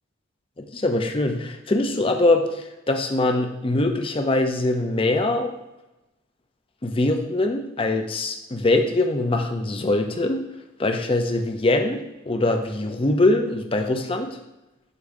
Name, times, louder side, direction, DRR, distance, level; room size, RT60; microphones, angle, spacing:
voice 1, 0.6-5.5 6.8-10.4 10.8-14.4, left 2 dB, 25° left, 5 dB, 0.6 m, -23 dB
8.2 x 2.7 x 4.8 m, 0.98 s
head